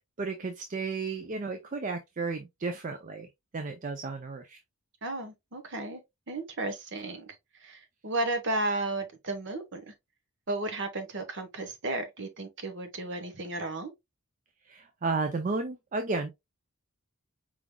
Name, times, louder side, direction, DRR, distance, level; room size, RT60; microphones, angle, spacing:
voice 1, 0.2-3.3 3.5-4.6 14.6-16.3, right 3 dB, 35° right, 0.4 m, -33 dB
voice 2, 5.0-6.0 6.3-7.3 7.6-9.9 10.5-13.9, right 2 dB, 55° right, 1.0 m, -34 dB
4.8 x 3.7 x 2.2 m
head